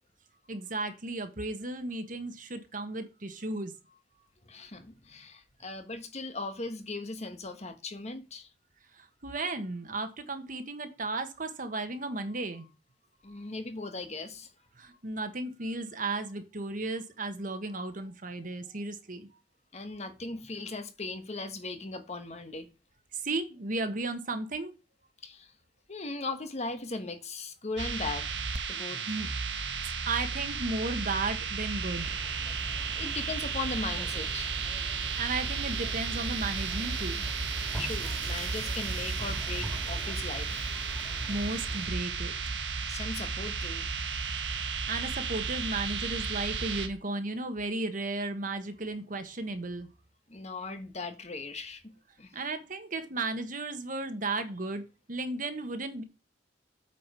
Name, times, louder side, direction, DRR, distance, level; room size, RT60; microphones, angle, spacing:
voice 1, 0.5-4.0 8.9-12.7 13.2-13.5 14.8-19.3 23.1-24.7 28.7-29.3 29.8-32.1 34.7-37.3 41.0-42.3 44.5-49.9 52.3-56.0, right 2 dB, 50° right, 1.5 m, -35 dB
voice 2, 4.5-8.5 13.2-14.5 19.7-22.7 25.2-25.5 25.9-28.4 28.7-29.0 32.6-32.7 32.9-34.5 37.8-40.7 42.9-43.8 50.3-51.9 52.2-52.4, left 3 dB, 40° left, 1.3 m, -38 dB
sound 1, 27.8-46.9, right 5 dB, 80° right, 1.5 m, -33 dB
sound 2, 32.0-41.9, equal, 10° left, 2.4 m, -44 dB
8.7 x 5.1 x 6.2 m
head